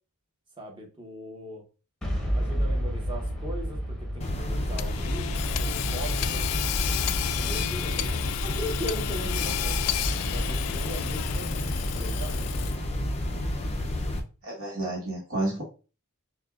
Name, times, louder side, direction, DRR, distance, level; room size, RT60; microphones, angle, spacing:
voice 1, 0.6-1.6 2.3-6.5 7.3-9.8 10.3-12.3, equal, 20° right, 1 dB, 1.0 m, -39 dB
Boom, 2.0-7.9, equal, 5° left, 0.9 m, -32 dB
sound 1, 4.2-14.2, left 1 dB, 30° left, 0.5 m, -30 dB
Hammer / Sawing, 4.8-13.0, left 12 dB, 90° left, 0.3 m, -32 dB
voice 2, 14.4-15.6, right 2 dB, 65° right, -4 dB, 1.4 m, -30 dB
6.3 x 2.3 x 2.4 m, 0.34 s
head